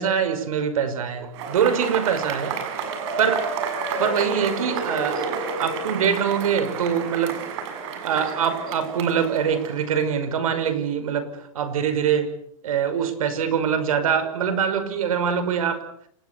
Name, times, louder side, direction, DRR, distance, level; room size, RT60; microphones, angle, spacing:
voice 1, 0.0-2.6 3.2-3.5 4.0-5.2 5.6-7.4 8.0-12.3 12.6-15.8, right 7 dB, 80° right, 11 dB, 5.7 m, -23 dB
Cheering / Applause / Crowd, 1.3-10.0, right 5 dB, 55° right, 7.6 m, -30 dB
29.0 x 20.0 x 7.0 m, 0.67 s
hypercardioid pair, 140°, 18 cm